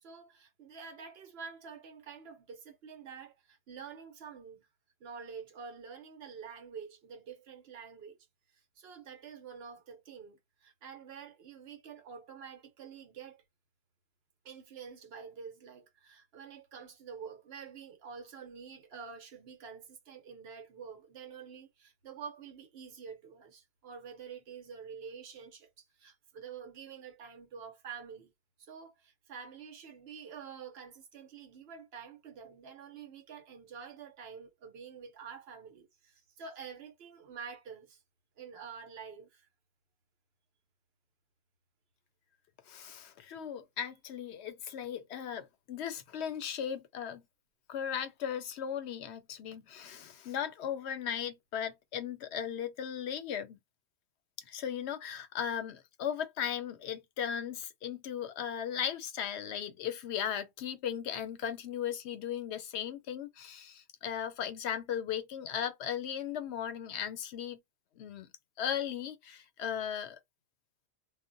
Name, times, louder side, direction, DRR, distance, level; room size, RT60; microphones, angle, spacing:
voice 1, 0.0-4.7 5.0-8.2 8.8-13.4 14.4-28.3 28.6-38.0 38.4-39.5, right 6 dB, 70° right, 0.9 m, -48 dB
voice 2, 42.7-47.2 47.7-53.6 54.5-67.6 68.0-68.3 68.6-70.2, left 9 dB, 80° left, 0.9 m, -37 dB
2.1 x 2.0 x 3.8 m
omnidirectional pair, 1.1 m